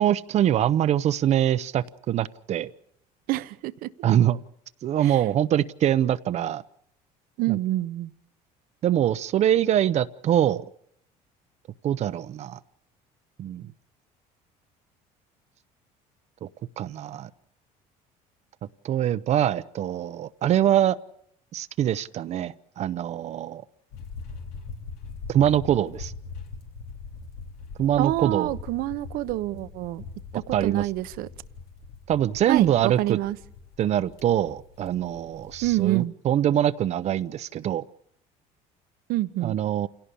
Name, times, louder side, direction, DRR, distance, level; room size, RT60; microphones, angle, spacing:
voice 1, 0.0-2.7 4.0-4.4 4.8-6.6 7.5-7.6 8.8-10.7 11.8-12.6 13.4-13.7 16.4-16.5 16.8-17.3 18.8-21.0 21.5-23.6 25.3-26.1 27.8-28.5 30.5-30.8 32.1-33.2 33.8-37.8 39.4-39.9, right 11 dB, 45° right, 0.8 m, -24 dB
voice 2, 3.3-3.9 5.0-5.2 7.4-8.1 28.0-30.0 30.3-31.3 32.5-33.4 35.6-36.1 39.1-39.6, right 16 dB, 70° right, 1.0 m, -27 dB
sound 1, 23.9-35.9, left 4 dB, 85° left, 3.8 m, -42 dB
28.0 x 17.5 x 7.0 m
cardioid pair, 130°, 15 cm